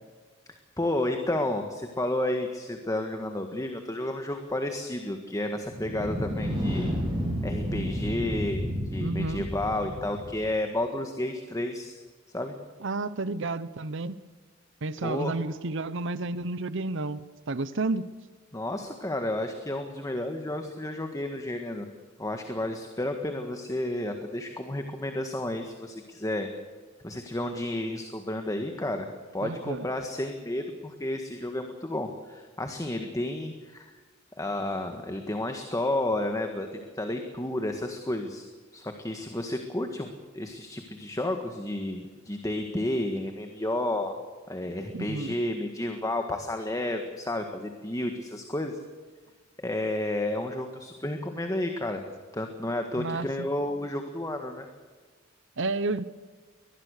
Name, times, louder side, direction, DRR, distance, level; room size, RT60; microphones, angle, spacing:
voice 1, 0.8-6.9 7.4-8.6 8.9-12.0 12.3-12.6 15.0-15.4 18.5-21.9 22.2-26.5 27.0-33.9 34.4-38.5 38.7-44.2 44.5-48.8 49.6-52.0 52.3-54.7, left 1 dB, 15° left, 5 dB, 1.7 m, -31 dB
sound 1, 5.7-10.5, equal, 25° right, 7.8 m, -31 dB
voice 2, 9.0-9.4 12.8-14.2 14.8-17.2 17.5-18.1 29.4-29.9 44.9-45.4 53.0-53.5 55.6-56.0, right 3 dB, 65° right, 15 dB, 0.9 m, -31 dB
23.0 x 19.5 x 6.6 m, 1.5 s
head